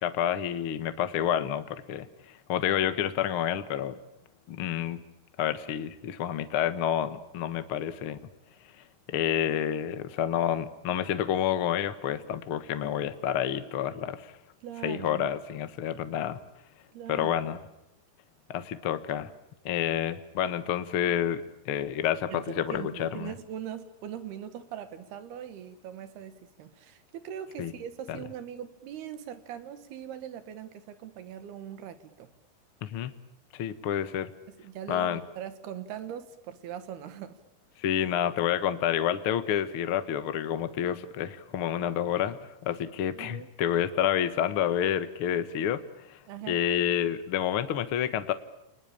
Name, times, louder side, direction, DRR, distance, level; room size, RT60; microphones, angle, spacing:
voice 1, 0.0-2.1 2.5-3.9 4.5-5.0 5.4-8.2 9.1-14.3 14.8-16.4 17.1-17.6 18.5-19.3 19.6-23.3 27.6-27.7 28.1-28.2 32.8-33.1 33.5-34.3 34.9-35.2 37.8-45.8 46.1-46.2 46.5-48.3, left 10 dB, 90° left, 11 dB, 1.2 m, -29 dB
voice 2, 14.6-15.3 16.9-17.4 22.3-32.3 34.5-37.4 43.1-43.5 46.3-46.6, right 9 dB, 70° right, 12 dB, 3.5 m, -41 dB
29.5 x 21.0 x 8.8 m, 0.88 s
omnidirectional pair, 4.8 m